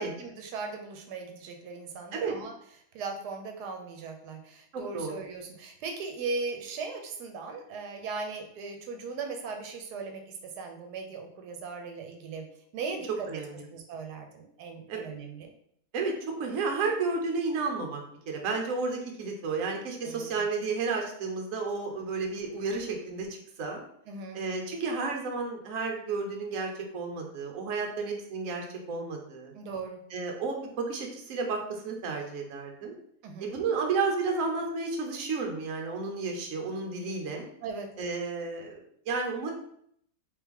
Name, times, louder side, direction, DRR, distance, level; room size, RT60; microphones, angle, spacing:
voice 1, 0.0-2.5 2.9-12.5 12.7-13.3 13.7-15.5 20.0-20.4 24.1-24.4 29.5-30.0 33.2-33.5 37.6-37.9, right 4 dB, 90° right, 4 dB, 1.2 m, -38 dB
voice 2, 4.7-5.2 13.3-13.7 14.9-15.1 15.9-18.0 18.3-23.8 24.3-29.5 30.1-33.0 33.4-37.5 38.0-39.5, right 4 dB, 60° right, 2 dB, 1.1 m, -32 dB
3.3 x 3.2 x 3.5 m, 0.68 s
omnidirectional pair, 1.7 m